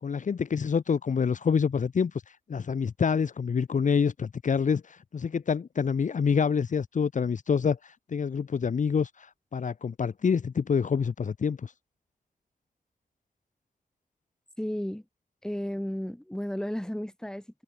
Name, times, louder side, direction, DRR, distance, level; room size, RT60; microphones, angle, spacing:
voice 1, 0.0-11.7, left 6 dB, 55° left, 1.4 m, -27 dB
voice 2, 14.6-15.0 15.4-17.6, equal, 5° left, 5.2 m, -33 dB
open air
wide cardioid pair, 125°, 15 cm